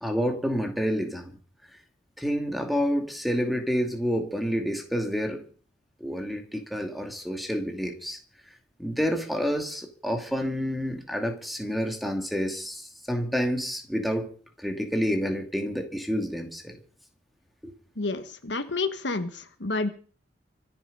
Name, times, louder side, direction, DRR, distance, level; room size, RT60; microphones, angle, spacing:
voice 1, 0.0-1.3 2.2-5.4 6.0-8.2 8.8-14.3 14.6-16.8 17.6-17.7, equal, ahead, 4 dB, 2.5 m, -29 dB
voice 2, 18.0-19.9, left 3 dB, 65° left, 10 dB, 1.2 m, -29 dB
25.5 x 8.5 x 5.4 m, 0.42 s
head